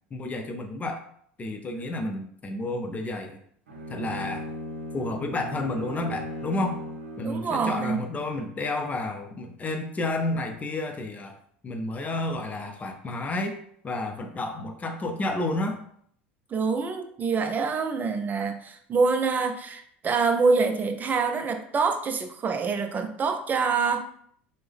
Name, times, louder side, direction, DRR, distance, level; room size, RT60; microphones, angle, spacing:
voice 1, 0.1-1.0 1.4-3.4 3.9-4.5 4.9-6.8 7.2-11.4 11.6-13.6 13.8-15.8, left 2 dB, 25° left, 4 dB, 0.5 m, -31 dB
Bowed string instrument, 3.7-7.9, equal, 85° right, 0.5 m, -37 dB
voice 2, 7.2-8.1 16.5-24.0, right 4 dB, 30° right, 7 dB, 0.5 m, -26 dB
3.3 x 2.1 x 3.3 m, 0.64 s
hypercardioid pair, 75°, 6 cm